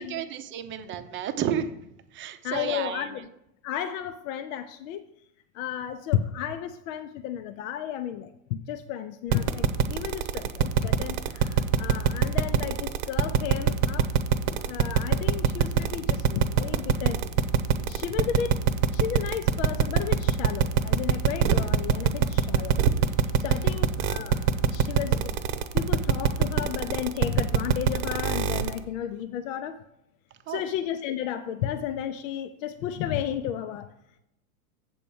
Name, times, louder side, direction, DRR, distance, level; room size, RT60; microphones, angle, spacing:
voice 1, 0.0-1.7 2.1-3.1 23.5-23.8 30.5-30.6, right 9 dB, 25° right, 9 dB, 0.7 m, -32 dB
voice 2, 2.4-3.3 3.6-5.0 5.5-14.1 14.7-17.2 17.9-18.6 18.9-22.8 23.4-29.7 30.5-33.9, left 10 dB, 60° left, 9 dB, 0.7 m, -33 dB
sound 1, 9.3-28.8, right 8 dB, 55° right, 0.9 m, -22 dB
7.8 x 4.5 x 7.0 m, 0.81 s
supercardioid pair, 125°, 44 cm